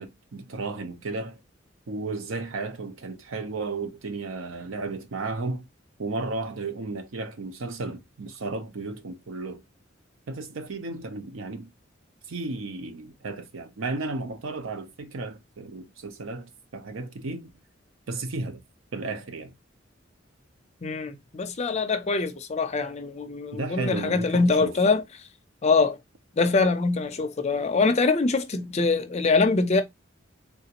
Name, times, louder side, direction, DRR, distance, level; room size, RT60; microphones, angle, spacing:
voice 1, 0.0-1.4 1.9-5.7 6.0-9.6 10.3-11.7 12.3-17.5 18.1-18.6 18.9-19.5 23.5-24.7, right 3 dB, 80° right, 0.6 m, -34 dB
voice 2, 20.8-25.0 25.6-26.0 26.3-29.8, left 4 dB, 35° left, 0.5 m, -23 dB
3.4 x 2.5 x 2.8 m
head